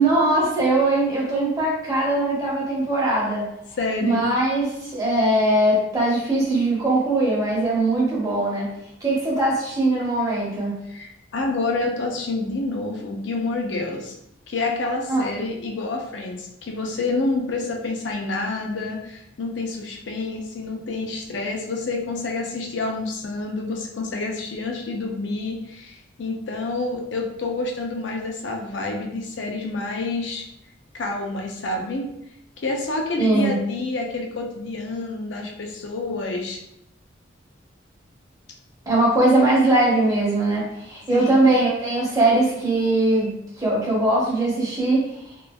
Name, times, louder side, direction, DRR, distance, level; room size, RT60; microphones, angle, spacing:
voice 1, 0.0-3.5 4.0-8.7 9.0-10.8 15.1-15.2 33.2-33.5 38.9-45.0, right 2 dB, 20° right, -5 dB, 0.8 m, -20 dB
voice 2, 3.8-4.2 10.9-14.1 14.5-30.5 30.9-32.1 32.6-36.6 41.1-41.5, left 3 dB, 75° left, 1 dB, 0.5 m, -28 dB
2.9 x 2.4 x 2.2 m, 0.77 s
head